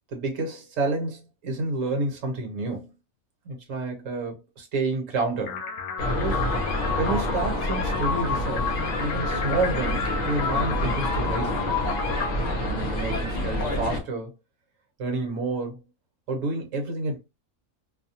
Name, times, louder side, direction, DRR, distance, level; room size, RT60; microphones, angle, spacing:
voice 1, 0.1-2.9 3.4-5.6 6.2-6.4 7.0-8.7 9.0-11.8 12.7-14.3 15.0-15.8 16.3-17.2, right 3 dB, 60° right, 1.3 m, -29 dB
sound 1, 5.5-13.4, left 6 dB, 70° left, 0.9 m, -31 dB
sound 2, 6.0-14.0, left 1 dB, 45° left, 0.5 m, -28 dB
2.7 x 2.2 x 2.7 m
omnidirectional pair, 1.6 m